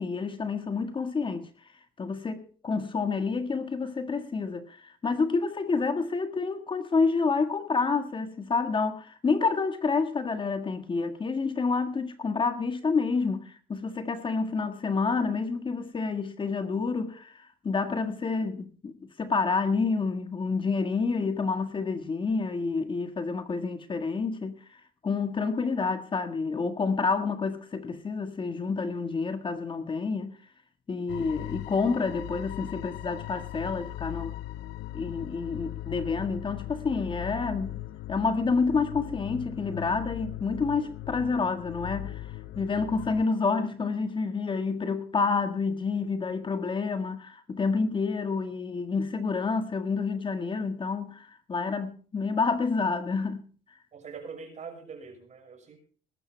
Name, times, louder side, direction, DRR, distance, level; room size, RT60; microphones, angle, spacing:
voice 1, 0.0-1.5 2.0-30.4 30.9-34.4 34.9-37.8 38.1-53.5, left 4 dB, 30° left, 1.7 m, -29 dB
sound 1, 31.1-43.3, left 14 dB, 80° left, 0.6 m, -39 dB
voice 2, 53.9-55.8, right 5 dB, 45° right, 6.2 m, -43 dB
20.0 x 12.0 x 3.4 m
cardioid pair, 110°, 17 cm